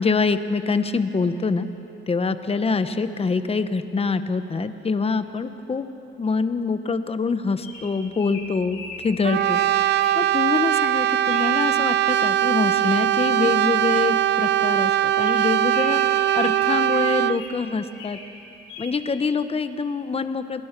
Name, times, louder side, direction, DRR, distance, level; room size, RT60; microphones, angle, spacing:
voice 1, 0.0-1.7 2.1-5.9 6.2-18.2 18.8-20.6, left 4 dB, 30° left, 11 dB, 1.1 m, -25 dB
Bird vocalization bird call bird song, 7.6-10.2 10.6-11.0 11.3-11.6 13.0-13.3 13.5-13.6 13.9-14.1 14.5-14.6 15.1-17.6 17.9-18.3 18.7-18.9, left 3 dB, 90° left, 6.7 m, -39 dB
Brass instrument, 9.2-17.4, right 12 dB, 60° right, 0.5 m, -21 dB
28.5 x 19.0 x 6.1 m, 2.9 s
cardioid pair, 90°, 20 cm